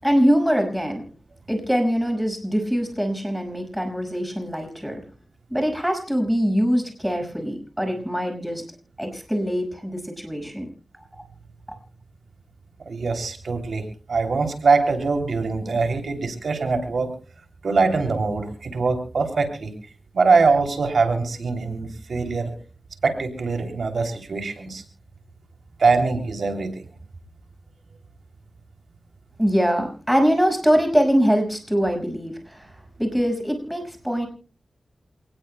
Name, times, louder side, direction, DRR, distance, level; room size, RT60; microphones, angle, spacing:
voice 1, 0.0-1.1 1.5-5.0 5.5-8.6 9.0-10.7 11.2-11.3 29.4-34.3, equal, 5° right, 3 dB, 5.6 m, -23 dB
voice 2, 12.9-17.1 17.6-19.7 20.1-22.5 23.0-24.8 25.8-26.8, right 4 dB, 85° right, 5 dB, 2.9 m, -23 dB
27.5 x 19.0 x 2.2 m, 0.38 s
wide cardioid pair, 65°, 0 cm